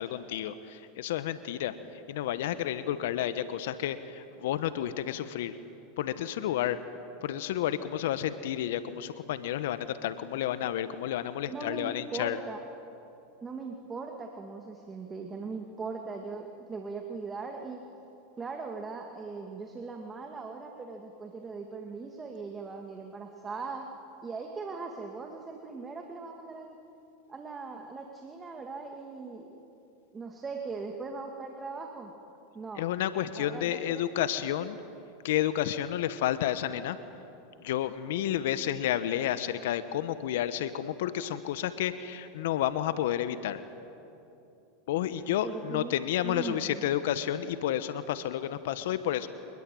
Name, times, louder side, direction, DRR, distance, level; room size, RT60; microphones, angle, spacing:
voice 1, 0.0-5.6 6.0-6.8 7.2-12.4 32.8-34.8 35.2-37.0 37.6-43.6 44.9-49.3, left 11 dB, 70° left, 13 dB, 1.1 m, -31 dB
voice 2, 11.5-12.6 13.4-17.9 18.4-26.8 27.3-29.5 30.1-32.1 32.5-32.9 33.4-34.0 45.4-45.9 46.2-46.8, right 4 dB, 20° right, 3 dB, 2.3 m, -40 dB
28.5 x 20.5 x 9.2 m, 2.8 s
hypercardioid pair, 95°, 0 cm